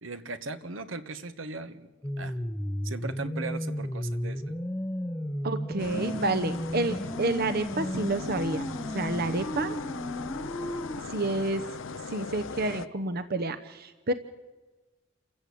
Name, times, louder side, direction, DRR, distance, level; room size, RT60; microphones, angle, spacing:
voice 1, 0.0-1.9 2.2-2.4 2.8-4.5, right 3 dB, 80° right, 11 dB, 1.3 m, -38 dB
sound 1, 2.0-11.0, left 1 dB, 10° left, 0.6 m, -34 dB
voice 2, 5.4-8.7 8.9-9.8 11.1-11.6 12.1-14.1, right 2 dB, 50° right, 9 dB, 0.9 m, -29 dB
sound 2, 5.8-12.9, left 4 dB, 80° left, 0.8 m, -39 dB
28.5 x 14.5 x 8.5 m, 1.2 s
head